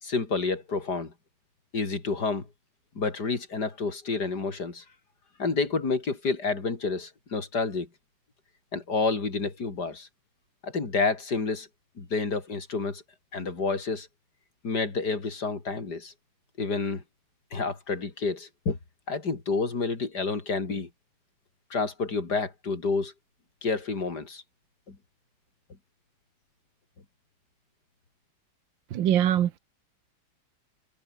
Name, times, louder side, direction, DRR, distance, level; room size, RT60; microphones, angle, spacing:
voice 1, 0.0-1.1 1.7-2.5 3.0-4.8 5.4-7.9 8.7-10.1 10.6-11.7 12.0-13.0 13.3-14.1 14.6-16.1 16.6-17.0 17.5-18.8 19.1-20.9 21.7-23.1 23.6-24.4 24.9-25.0, left 4 dB, 55° left, 4.2 m, -29 dB
voice 2, 28.9-29.6, right 11 dB, 70° right, 1.7 m, -23 dB
omnidirectional pair, 2.2 m